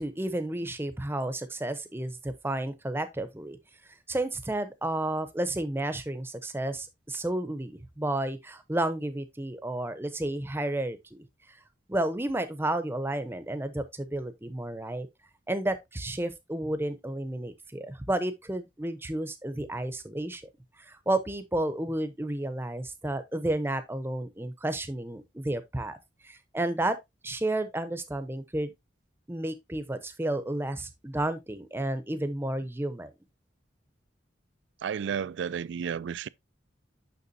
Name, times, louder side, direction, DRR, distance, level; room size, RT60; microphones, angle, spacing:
voice 1, 0.0-3.6 4.1-11.2 11.9-15.1 15.5-20.4 20.9-26.0 26.2-27.0 27.2-28.7 29.3-33.1, right 1 dB, 10° right, 0.7 m, -31 dB
voice 2, 34.8-36.3, right 7 dB, 70° right, 0.3 m, -32 dB
6.8 x 5.9 x 2.6 m
head